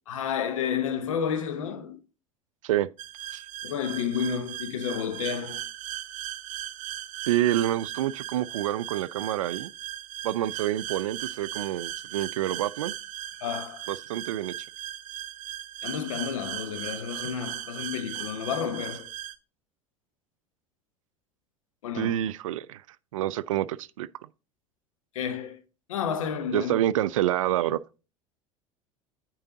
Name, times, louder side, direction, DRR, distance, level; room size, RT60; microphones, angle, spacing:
voice 1, 0.1-2.0 3.6-5.6 13.4-13.9 15.8-19.1 21.8-22.2 25.1-25.6 25.9-26.8, left 8 dB, 70° left, 1.0 m, -31 dB
sound 1, 3.0-19.3, right 13 dB, 45° right, 0.8 m, -38 dB
voice 2, 7.3-9.7 10.2-12.9 13.9-14.5 22.0-22.8 23.1-24.1 26.5-27.8, right 13 dB, 70° right, 0.4 m, -27 dB
8.8 x 4.7 x 3.8 m
figure-of-eight pair, 70°, 17 cm